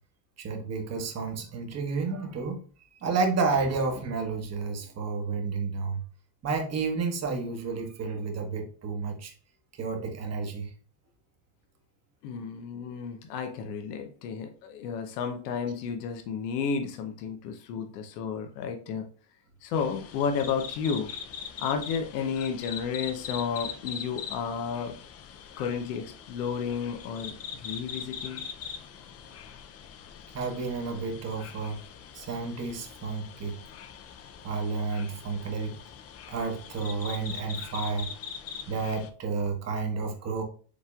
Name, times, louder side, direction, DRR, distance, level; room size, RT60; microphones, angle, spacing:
voice 1, 0.4-2.6 2.9-6.0 6.4-9.3 9.8-10.7 30.3-31.8 32.1-33.6 34.4-35.8 36.3-38.1 38.7-40.4, right 4 dB, 35° right, 1.2 m, -31 dB
voice 2, 12.2-19.0 19.6-21.1 21.6-24.9 25.6-28.4, left 6 dB, 85° left, 0.9 m, -32 dB
sound 1, 19.7-39.1, left 7 dB, 30° left, 0.5 m, -42 dB
5.1 x 3.6 x 2.4 m
supercardioid pair, 95°, 47 cm